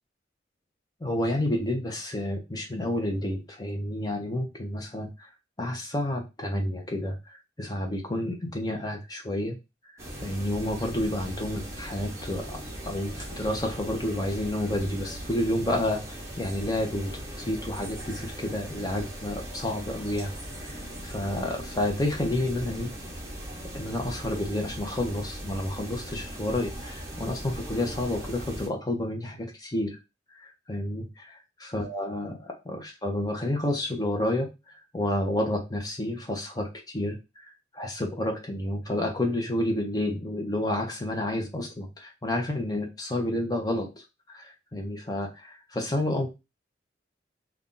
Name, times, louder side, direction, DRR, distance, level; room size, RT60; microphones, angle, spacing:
voice 1, 1.0-5.3 5.6-9.6 10.2-17.1 17.4-20.3 20.6-22.9 23.7-30.0 30.3-31.2 31.6-43.9 44.3-46.3, left 1 dB, 20° left, 2 dB, 0.7 m, -30 dB
sound 1, 10.0-28.7, equal, 15° right, 0.9 m, -39 dB
2.6 x 2.3 x 3.7 m, 0.25 s
head